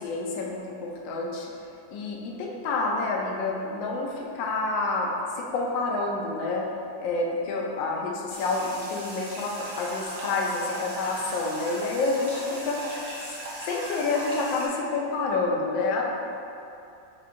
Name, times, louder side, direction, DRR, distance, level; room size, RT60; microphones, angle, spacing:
voice 1, 0.0-1.5 1.9-6.7 7.0-12.9 13.7-16.0, left 3 dB, 85° left, -2 dB, 1.3 m, -28 dB
sound 1, 8.3-14.7, right 1 dB, 85° right, 0.5 m, -38 dB
5.7 x 2.7 x 2.5 m, 2.7 s
omnidirectional pair, 2.0 m